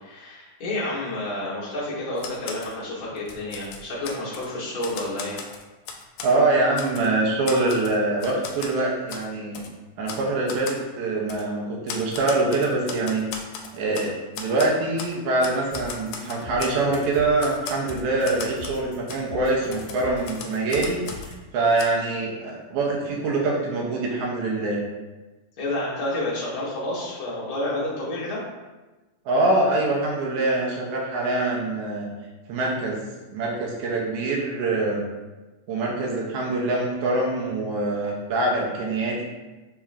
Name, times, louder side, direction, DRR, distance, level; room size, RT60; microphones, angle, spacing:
voice 1, 0.0-5.4 25.6-28.4, left 1 dB, 60° left, -8 dB, 0.9 m, -30 dB
Typewriter, 2.2-2.7 3.2-4.5 4.8-6.3 6.8-7.1 7.5-8.7 9.1-9.3 9.5-9.7 10.1-10.2 10.5-10.8 11.3-11.4 11.9-14.1 14.3-15.1 15.4-17.1 17.4-18.8 19.1-19.2 19.7-21.4 21.8-21.9, left 5 dB, 85° left, 2.2 m, -37 dB
voice 2, 6.2-9.6 10.0-13.3 13.7-24.8 29.3-32.1 32.5-33.0 33.3-35.0 35.7-39.2, right 2 dB, 80° right, -2 dB, 2.1 m, -24 dB
sound 1, 15.7-21.4, left 4 dB, 50° right, 1.9 m, -41 dB
4.8 x 4.1 x 2.4 m, 1.2 s
omnidirectional pair, 3.7 m